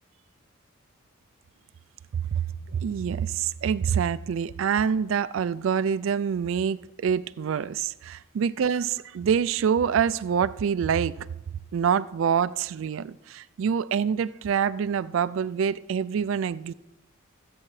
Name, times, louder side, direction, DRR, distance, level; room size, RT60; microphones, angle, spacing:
voice 1, 2.3-11.2 11.7-16.7, right 7 dB, 65° right, 0.3 m, -26 dB
25.5 x 8.6 x 3.2 m
head